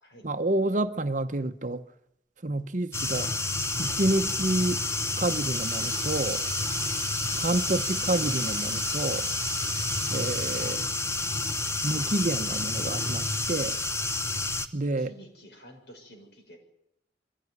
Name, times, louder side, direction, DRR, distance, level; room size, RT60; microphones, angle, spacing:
voice 1, 0.2-1.8 2.4-3.3 3.8-4.8 5.2-6.4 7.3-9.3 10.1-10.8 11.8-13.8 14.7-15.1, right 2 dB, 45° right, 0.9 m, -28 dB
sound 1, 2.9-14.7, left 2 dB, 15° left, 0.9 m, -30 dB
sound 2, 5.5-10.7, right 4 dB, 20° right, 3.6 m, -38 dB
voice 2, 15.0-16.6, equal, 65° left, 6.4 m, -51 dB
23.0 x 16.0 x 9.6 m
head